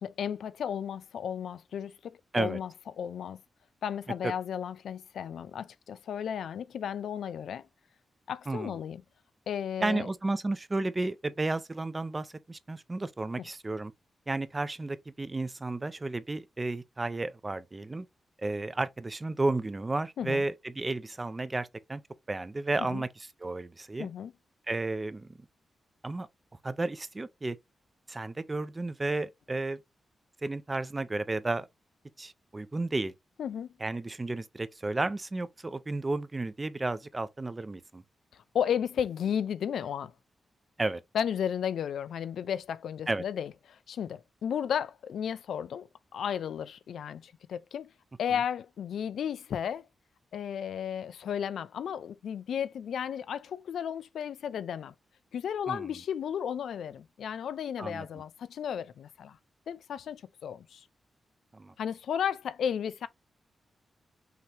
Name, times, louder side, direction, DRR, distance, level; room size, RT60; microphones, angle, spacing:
voice 1, 0.0-2.1 2.4-2.7 3.0-3.4 3.8-7.7 8.3-9.0 9.5-10.1 13.4-13.5 20.2-20.4 22.9-23.0 24.0-24.3 33.4-33.7 38.3-40.1 41.1-47.9 48.2-49.9 50.3-54.9 55.3-59.4 59.7-60.8 61.8-63.1, left 8 dB, 90° left, 0.4 m, -34 dB
voice 2, 8.5-8.8 9.8-13.9 14.3-18.1 18.4-22.0 22.3-24.1 24.7-25.4 26.0-26.3 26.6-27.6 28.1-29.8 30.4-31.7 32.2-33.1 33.8-38.0 40.8-41.0 43.1-43.2 55.7-55.9 57.8-58.1 61.5-61.7, right 2 dB, 20° right, 0.4 m, -32 dB
5.7 x 2.9 x 3.3 m
wide cardioid pair, 170°, 0 cm